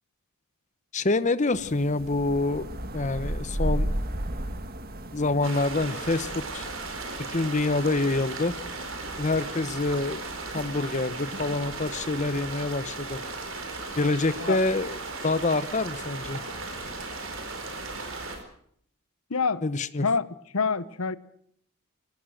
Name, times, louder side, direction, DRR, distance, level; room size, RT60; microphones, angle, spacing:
voice 1, 0.9-2.6 2.9-3.9 5.1-6.7 7.3-8.5 9.2-10.2 10.5-13.2 14.0-14.9 15.2-16.4 19.6-20.1, left 2 dB, 35° left, 0.9 m, -26 dB
sound 1, 1.5-18.4, right 1 dB, 45° right, 1.7 m, -37 dB
sound 2, 5.4-18.4, right 3 dB, 65° right, 4.3 m, -37 dB
voice 2, 19.3-19.6 20.0-20.3 20.5-21.2, left 5 dB, 85° left, 1.0 m, -26 dB
24.0 x 18.0 x 6.5 m
head